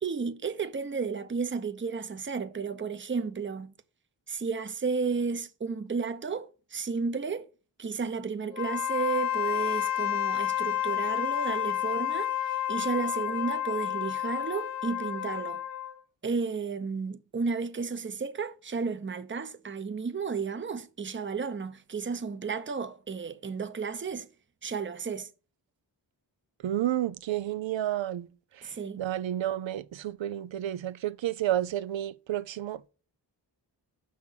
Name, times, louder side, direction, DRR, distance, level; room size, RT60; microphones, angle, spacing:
voice 1, 0.0-3.7 4.3-7.5 7.8-15.6 16.2-24.3 24.6-25.3 28.6-29.1, right 5 dB, 25° right, 0.7 m, -33 dB
Wind instrument woodwind instrument, 8.5-16.0, left 12 dB, 85° left, 0.7 m, -30 dB
voice 2, 26.6-28.3 29.0-32.9, right 12 dB, 85° right, 0.6 m, -31 dB
6.0 x 5.8 x 4.4 m
cardioid pair, 45°, 44 cm